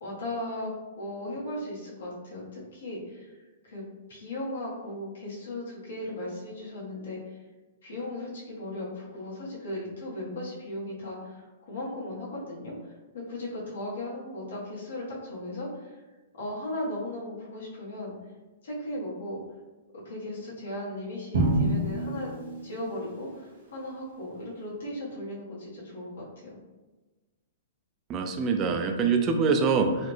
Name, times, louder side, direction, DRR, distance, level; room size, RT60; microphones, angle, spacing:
voice 1, 0.0-3.4 3.6-3.8 4.1-7.3 7.8-16.0 16.4-18.1 18.6-19.4 20.0-22.3 22.6-26.5, left 1 dB, 90° left, -6 dB, 1.4 m, -37 dB
Drum, 21.3-23.4, right 1 dB, 65° right, 1.4 m, -28 dB
voice 2, 28.1-30.1, right 5 dB, 25° right, 5 dB, 0.3 m, -24 dB
3.9 x 2.0 x 3.2 m, 1.2 s
hypercardioid pair, 145°, 0 cm